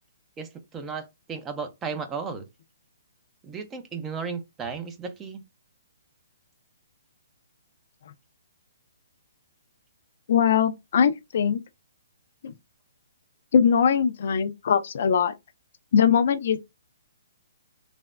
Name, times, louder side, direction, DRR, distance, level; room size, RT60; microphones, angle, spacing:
voice 1, 0.4-2.5 3.4-5.4, right 5 dB, 15° right, 0.4 m, -34 dB
voice 2, 10.3-11.6 12.4-12.5 13.5-15.3 15.9-16.7, left 7 dB, 55° left, 0.4 m, -21 dB
3.2 x 2.0 x 2.4 m
hypercardioid pair, 155°, 0 cm